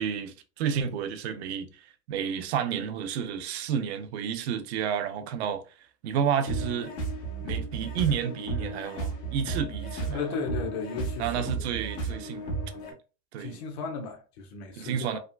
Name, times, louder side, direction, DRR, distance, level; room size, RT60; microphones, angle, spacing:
voice 1, 0.0-5.6 6.0-7.0 7.4-10.3 11.2-12.6 13.3-13.6 14.8-15.2, right 8 dB, 85° right, 0.6 m, -31 dB
sound 1, 6.5-12.9, right 3 dB, 50° left, 1.3 m, -34 dB
voice 2, 10.1-11.5 13.4-15.2, left 5 dB, 80° left, 0.9 m, -35 dB
3.5 x 2.2 x 2.3 m
supercardioid pair, 115°, 32 cm